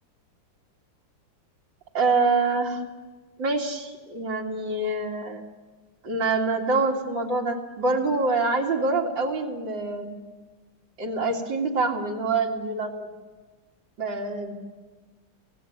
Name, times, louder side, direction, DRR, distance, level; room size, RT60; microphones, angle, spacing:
voice 1, 1.9-2.8 3.4-5.4 6.0-10.2 11.0-13.1 14.0-14.5, right 3 dB, 80° right, 1 dB, 3.2 m, -25 dB
28.5 x 17.5 x 8.7 m, 1.3 s
omnidirectional pair, 2.0 m